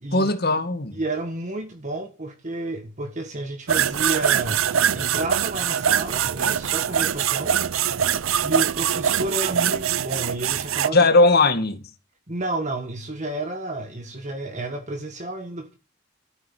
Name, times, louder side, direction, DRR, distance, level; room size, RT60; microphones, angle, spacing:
voice 1, 0.1-1.0 10.9-11.8, left 2 dB, 50° left, 2.1 m, -18 dB
voice 2, 0.9-4.6 4.9-7.6 8.4-11.1 12.3-15.7, right 2 dB, 35° right, 1.7 m, -31 dB
sound 1, 3.7-10.9, right 9 dB, 80° right, 0.6 m, -23 dB
13.5 x 8.0 x 8.5 m
head